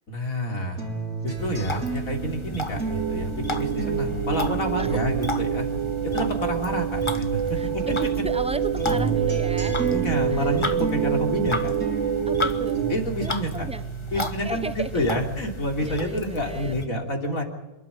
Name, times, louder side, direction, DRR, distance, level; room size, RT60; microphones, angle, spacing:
voice 1, 0.1-0.8 1.2-5.7 6.0-7.8 9.9-11.8 12.9-13.7 14.1-17.4, equal, 65° left, 2 dB, 3.8 m, -28 dB
sound 1, 0.8-7.4 7.8-15.4 15.8-16.8, right 4 dB, 75° right, 4.2 m, -34 dB
sound 2, 1.4-16.9, left 3 dB, 20° left, 1.2 m, -34 dB
sound 3, 2.7-12.9, right 9 dB, 55° right, 1.2 m, -27 dB
voice 2, 7.5-9.8 10.3-10.6 12.3-12.8 13.2-13.8 14.1-15.1 15.8-16.8, right 2 dB, 5° right, 13 dB, 0.6 m, -35 dB
28.0 x 12.5 x 8.4 m, 1.0 s
omnidirectional pair, 1.5 m